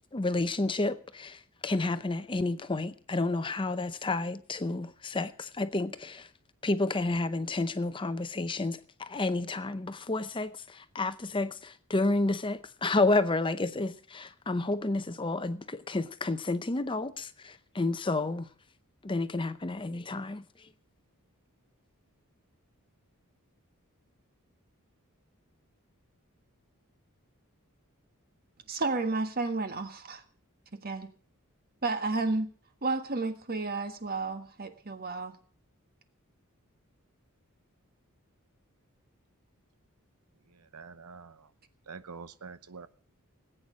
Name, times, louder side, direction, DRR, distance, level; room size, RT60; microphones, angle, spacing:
voice 1, 0.1-6.3 6.6-18.5 19.0-20.7, left 2 dB, 20° left, 0.7 m, -30 dB
voice 2, 28.7-30.2 30.7-31.1 31.8-32.5 32.8-35.3, right 3 dB, 40° right, 1.5 m, -31 dB
voice 3, 40.5-41.5 41.9-42.9, right 5 dB, 85° right, 0.9 m, -46 dB
19.0 x 9.0 x 6.3 m
head